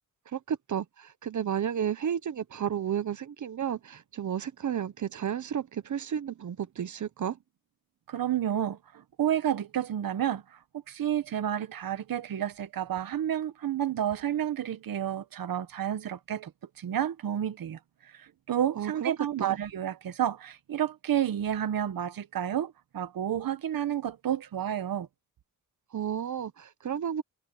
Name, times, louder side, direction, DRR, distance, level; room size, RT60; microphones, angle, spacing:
voice 1, 0.3-7.4 18.8-19.1 19.4-19.6 25.9-27.2, right 8 dB, 60° right, 0.9 m, -32 dB
voice 2, 8.1-10.6 10.9-16.5 16.8-17.8 18.1-25.1, right 10 dB, 85° right, 1.2 m, -30 dB
wide cardioid pair, 120°, 34 cm